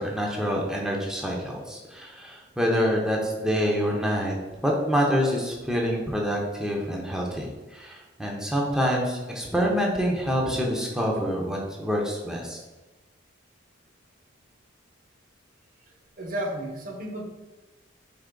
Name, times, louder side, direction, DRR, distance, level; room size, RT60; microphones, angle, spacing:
voice 1, 0.0-4.3 4.6-12.6, equal, 5° right, -2 dB, 0.6 m, -26 dB
voice 2, 16.2-17.2, right 1 dB, 45° right, 2 dB, 0.8 m, -32 dB
4.5 x 2.9 x 3.7 m, 1.2 s
head